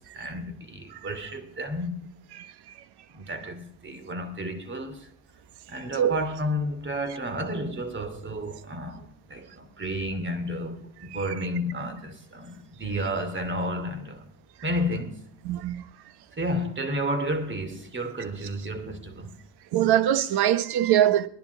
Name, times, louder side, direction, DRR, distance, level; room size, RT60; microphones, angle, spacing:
voice 1, 0.1-2.0 3.1-5.1 5.7-14.3 14.6-15.2 16.3-19.3, equal, 25° right, 2.7 m, -31 dB
voice 2, 15.4-15.8 19.7-21.3, right 11 dB, 65° right, 1.2 m, -22 dB
19.5 x 11.0 x 5.7 m
hypercardioid pair, 65°, 43 cm